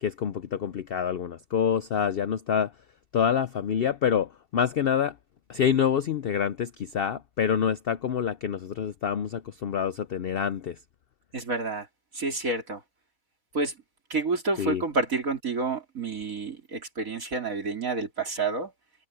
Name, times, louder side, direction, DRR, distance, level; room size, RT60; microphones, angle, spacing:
voice 1, 0.0-2.7 3.1-5.1 5.5-10.8 14.6-14.8, left 8 dB, 70° left, 0.5 m, -27 dB
voice 2, 11.3-11.9 12.1-12.8 13.5-13.7 14.1-18.7, right 3 dB, 60° right, 4.0 m, -29 dB
omnidirectional pair, 1.7 m